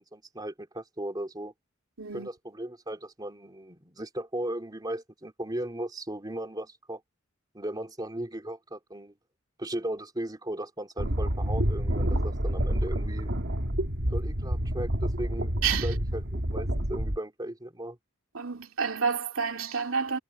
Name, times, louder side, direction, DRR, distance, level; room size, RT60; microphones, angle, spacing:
voice 1, 0.0-1.5 2.1-7.0 7.5-9.1 9.6-13.3 14.1-18.0, right 1 dB, 20° right, 3.0 m, -37 dB
voice 2, 2.0-2.3 15.6-15.9 18.3-20.2, right 6 dB, 90° right, 2.7 m, -29 dB
sound 1, 11.0-17.2, equal, 65° right, 2.9 m, -28 dB
head